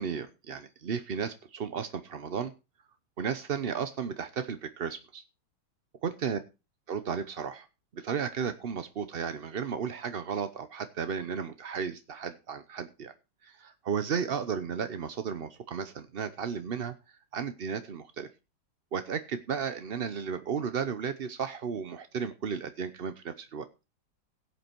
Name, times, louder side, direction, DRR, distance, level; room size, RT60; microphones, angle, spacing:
voice 1, 0.0-2.5 3.2-5.2 6.0-6.4 6.9-7.7 7.9-13.1 13.4-16.9 17.3-18.3 18.9-23.7, right 6 dB, 55° right, 10 dB, 0.6 m, -34 dB
16.5 x 8.4 x 4.5 m, 0.29 s
omnidirectional pair, 2.0 m